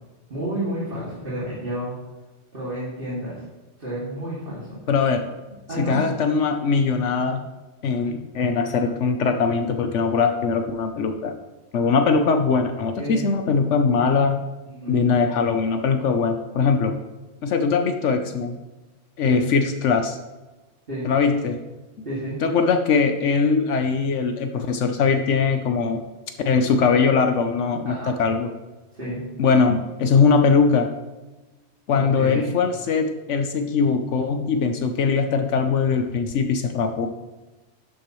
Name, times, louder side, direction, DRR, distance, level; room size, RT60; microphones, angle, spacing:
voice 1, 0.3-1.9 2.5-3.4 3.8-4.7 5.7-6.0 13.0-13.2 14.7-14.9 19.2-19.5 20.9-21.1 22.0-22.4 27.8-28.1 29.0-29.2 31.9-32.6, right 1 dB, 45° right, -9 dB, 2.7 m, -30 dB
voice 2, 4.9-5.3 5.8-7.5 7.8-11.3 11.7-14.4 14.9-17.0 17.4-18.6 19.2-20.2 21.0-21.6 22.4-26.0 26.4-28.5 29.4-30.9 31.9-37.1, left 5 dB, 75° left, 6 dB, 1.0 m, -21 dB
11.5 x 7.5 x 3.1 m, 1.1 s
omnidirectional pair, 1.3 m